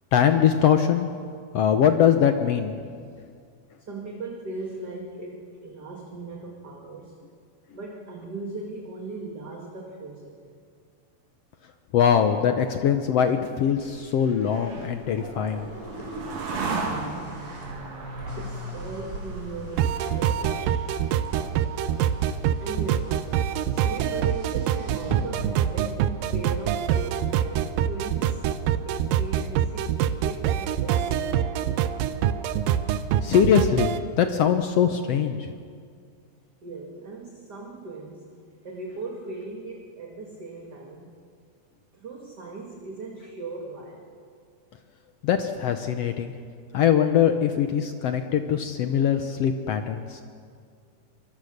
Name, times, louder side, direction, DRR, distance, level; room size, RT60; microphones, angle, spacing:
voice 1, 0.1-1.1 1.5-2.8 11.9-15.7 33.2-35.5 45.2-46.3 46.7-50.2, left 8 dB, 75° left, 7 dB, 1.4 m, -22 dB
voice 2, 3.8-7.2 7.7-10.4 13.9-14.0 16.8-17.6 18.0-28.6 28.8-31.7 36.6-38.4 38.6-41.2 41.9-44.1, right 3 dB, 35° right, 0 dB, 2.0 m, -39 dB
sound 1, 13.2-20.6, right 3 dB, 70° right, 4.2 m, -35 dB
Car, 15.4-25.6, equal, 10° left, 5.4 m, -45 dB
sound 2, 19.8-34.0, right 9 dB, 85° right, 2.5 m, -25 dB
24.5 x 23.0 x 6.6 m, 2.2 s
omnidirectional pair, 3.9 m